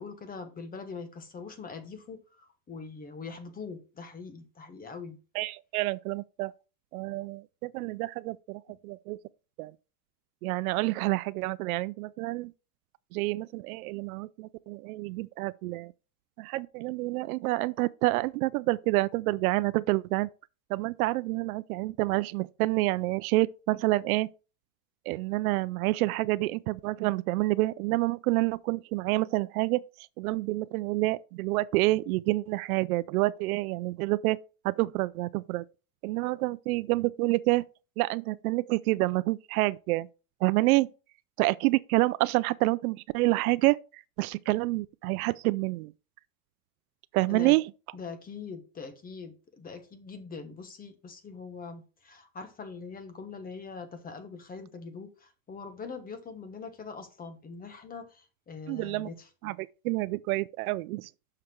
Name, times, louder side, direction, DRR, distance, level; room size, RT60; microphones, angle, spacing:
voice 1, 0.0-5.2 47.3-47.5 47.9-59.3, left 5 dB, 20° left, 1.2 m, -42 dB
voice 2, 5.3-6.5 6.9-9.2 9.6-9.7 10.4-12.5 13.1-15.9 16.4-20.3 20.7-24.3 25.1-34.4 34.6-35.6 36.0-37.6 38.0-40.1 40.4-40.9 41.4-45.9 47.1-47.6 58.7-59.1 59.4-61.1, right 20 dB, 70° right, 0.5 m, -28 dB
6.6 x 5.8 x 4.4 m
supercardioid pair, 130°, 45 cm